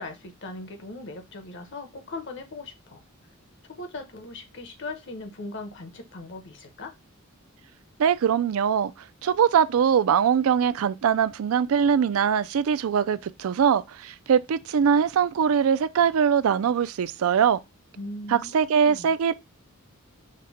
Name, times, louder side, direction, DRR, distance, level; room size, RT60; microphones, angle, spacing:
voice 1, 0.0-3.0 3.8-6.9 17.9-19.2, left 2 dB, 60° left, 1.0 m, -39 dB
voice 2, 8.0-8.9 9.2-17.6 18.3-19.3, right 7 dB, 80° right, 0.4 m, -22 dB
5.2 x 2.2 x 4.0 m
head